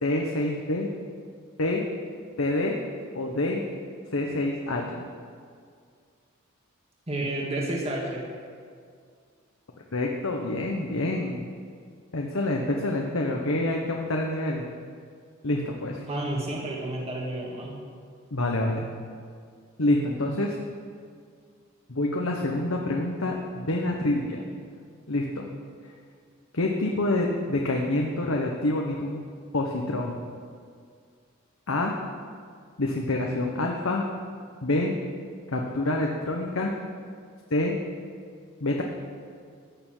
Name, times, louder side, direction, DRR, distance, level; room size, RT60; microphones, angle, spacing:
voice 1, 0.0-0.9 1.6-1.9 2.4-2.8 3.1-3.6 4.1-5.0 9.9-11.5 12.1-14.7 15.4-16.0 18.3-18.8 19.8-20.5 21.9-24.4 25.1-25.4 26.5-29.2 29.5-30.1 31.7-31.9 32.8-34.0 34.6-34.9 35.5-36.7 37.5-37.8 38.6-38.8, left 2 dB, 65° left, 0 dB, 1.1 m, -27 dB
voice 2, 7.1-8.2 16.1-17.8, right 1 dB, 30° right, -3 dB, 2.0 m, -30 dB
14.5 x 6.9 x 9.1 m, 2.1 s
head